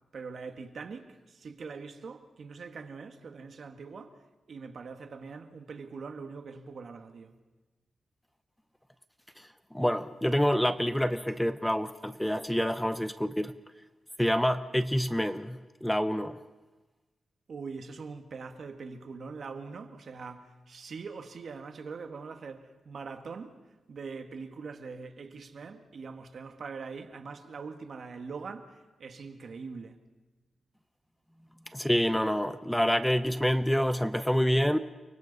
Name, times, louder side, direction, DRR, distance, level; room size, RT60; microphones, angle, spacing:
voice 1, 0.1-4.2 4.5-7.4 17.5-23.6 23.9-30.0, right 4 dB, 55° right, 1.6 m, -42 dB
voice 2, 9.4-13.5 14.2-16.4 31.7-34.8, equal, 5° left, 0.6 m, -27 dB
29.5 x 24.0 x 4.1 m
wide cardioid pair, 130°, 0 cm